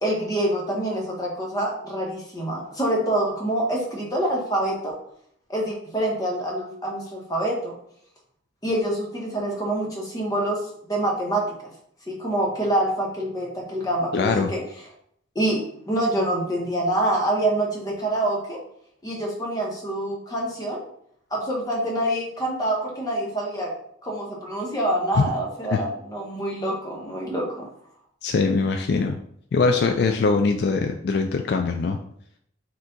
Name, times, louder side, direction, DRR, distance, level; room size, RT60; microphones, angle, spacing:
voice 1, 0.0-5.0 5.5-7.7 8.6-10.6 10.9-11.5 12.1-14.6 15.3-18.6 19.0-20.8 21.3-23.7 24.0-27.7, right 1 dB, 20° left, -2 dB, 1.0 m, -26 dB
voice 2, 14.1-14.5 25.2-25.3 25.7-25.8 28.2-29.2 29.5-32.0, left 4 dB, 60° left, 5 dB, 0.3 m, -22 dB
4.4 x 2.5 x 3.9 m, 0.67 s
head